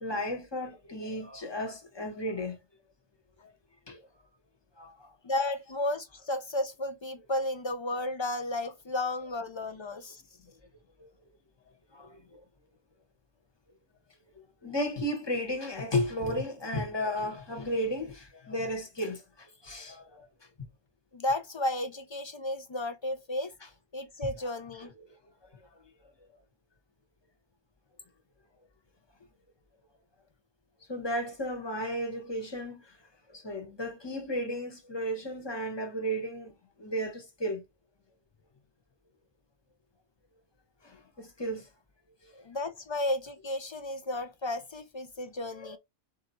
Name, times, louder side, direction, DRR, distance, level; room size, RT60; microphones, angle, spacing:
voice 1, 0.0-2.6 3.4-3.5 3.9-4.0 4.8-5.1 11.0-11.1 11.9-12.4 14.6-20.3 24.4-24.5 24.8-25.1 30.9-32.9 33.3-36.5 36.8-37.6 40.8-41.7 45.5-45.8, equal, 25° left, 1.0 m, -34 dB
voice 2, 5.2-10.2 21.1-23.5 23.9-24.9 42.3-45.8, left 1 dB, 45° left, 0.3 m, -33 dB
4.6 x 2.7 x 4.1 m
omnidirectional pair, 1.1 m